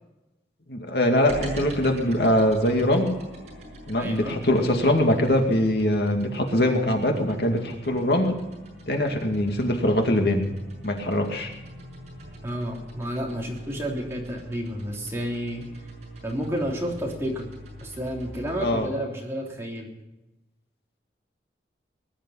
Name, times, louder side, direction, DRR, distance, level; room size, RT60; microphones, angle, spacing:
voice 1, 0.7-3.1 3.9-8.4 8.9-10.5 10.8-11.5 18.6-18.9, left 1 dB, 65° left, 3 dB, 2.3 m, -22 dB
sound 1, 1.3-18.7, right 1 dB, 35° right, 6.7 m, -42 dB
voice 2, 4.0-4.4 12.4-15.6 16.2-17.5 17.8-19.9, equal, 15° right, -2 dB, 3.4 m, -31 dB
20.0 x 11.0 x 5.7 m, 1.0 s
head